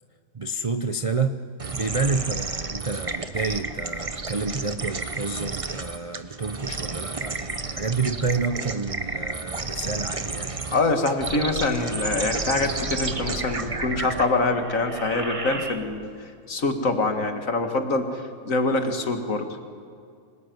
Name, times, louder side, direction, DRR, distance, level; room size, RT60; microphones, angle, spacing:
voice 1, 0.3-1.4 1.7-10.5, right 4 dB, 60° right, 9 dB, 0.3 m, -29 dB
sound 1, 1.6-16.1, right 3 dB, 25° right, 0.9 m, -32 dB
voice 2, 10.7-19.5, left 3 dB, 50° left, 6 dB, 2.1 m, -25 dB
25.5 x 19.0 x 9.4 m, 2.3 s
omnidirectional pair, 1.8 m